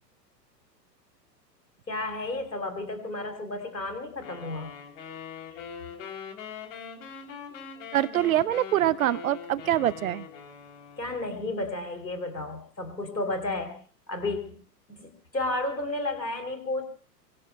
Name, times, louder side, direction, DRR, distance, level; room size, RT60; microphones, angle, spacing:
voice 1, 1.9-4.7 5.5-5.6 11.0-13.8 14.1-14.6 14.9-16.8, left 2 dB, 85° left, 5 dB, 3.3 m, -32 dB
sound 1, 4.2-11.4, left 7 dB, 50° left, 3.3 m, -42 dB
voice 2, 7.9-10.3, right 13 dB, 55° right, 21 dB, 0.7 m, -24 dB
24.5 x 23.5 x 2.3 m, 0.42 s
figure-of-eight pair, 100°, 49 cm